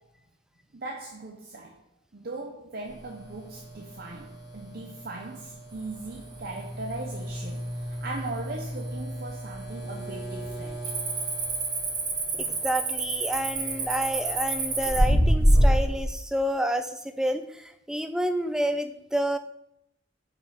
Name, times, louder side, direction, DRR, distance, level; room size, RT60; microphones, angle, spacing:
voice 1, 0.7-1.8 2.1-10.8, right 2 dB, 50° right, 0.7 m, -39 dB
sound 1, 2.8-16.0, equal, 65° left, 2.7 m, -29 dB
Cricket, 6.0-6.5 6.9-7.3 7.9-8.0 8.6-9.3 9.5-9.8 10.1-15.0, right 4 dB, 20° right, 1.0 m, -31 dB
voice 2, 12.3-19.4, equal, 5° right, 0.4 m, -29 dB
7.7 x 5.0 x 4.0 m
head